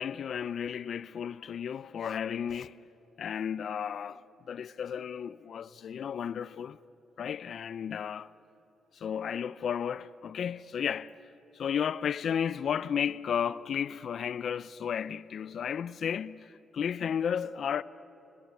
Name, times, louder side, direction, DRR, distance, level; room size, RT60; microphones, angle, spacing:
voice 1, 0.0-2.8 3.2-6.8 7.2-8.3 9.0-11.1 11.6-16.5 16.7-17.8, left 8 dB, 65° left, 0.5 m, -33 dB
29.5 x 20.0 x 9.6 m
cardioid pair, 75°, 0 cm